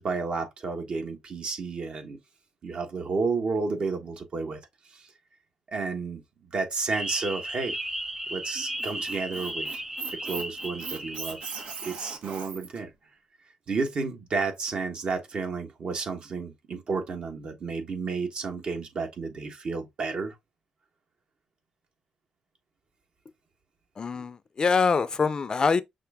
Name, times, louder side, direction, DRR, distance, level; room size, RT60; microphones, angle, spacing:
voice 1, 0.0-2.2 2.6-4.6 4.9-5.1 5.7-6.2 6.5-7.8 8.3-9.8 10.1-11.4 11.8-12.9 13.7-20.3, right 4 dB, 55° right, 1.4 m, -31 dB
sound 1, 6.9-12.1, equal, 10° right, 0.9 m, -35 dB
Squeak, 8.6-12.8, right 5 dB, 75° right, 1.2 m, -39 dB
voice 2, 24.0-25.8, left 5 dB, 40° left, 0.5 m, -24 dB
5.9 x 2.5 x 3.5 m
cardioid pair, 75°, 2 cm